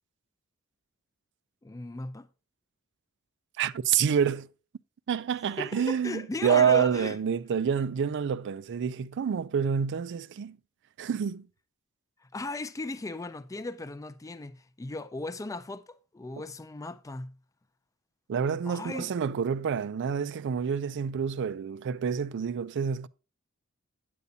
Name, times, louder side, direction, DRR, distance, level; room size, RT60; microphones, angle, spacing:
voice 1, 1.6-2.3 5.6-7.2 12.2-17.4 18.6-19.2, left 2 dB, 15° left, 0.4 m, -36 dB
voice 2, 3.6-4.5 5.1-10.6 11.0-11.5 18.3-23.1, right 7 dB, 55° right, 0.4 m, -28 dB
9.3 x 8.2 x 2.7 m
head